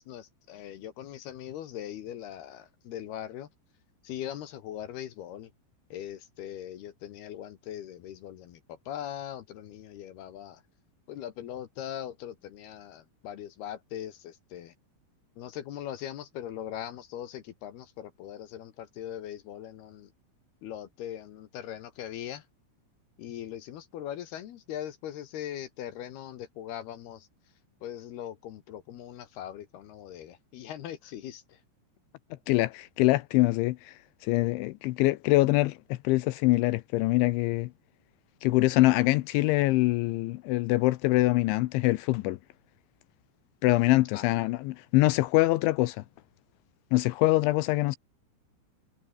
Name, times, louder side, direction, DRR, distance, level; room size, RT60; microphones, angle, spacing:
voice 1, 0.0-3.5 4.0-5.5 5.9-10.6 11.1-14.7 15.4-20.1 20.6-22.5 23.2-27.3 27.8-31.6 44.1-44.4, left 11 dB, 65° left, 2.9 m, -40 dB
voice 2, 32.5-33.9 34.2-37.7 38.4-42.4 43.6-46.0 46.9-48.0, left 19 dB, 85° left, 2.8 m, -24 dB
omnidirectional pair, 5.9 m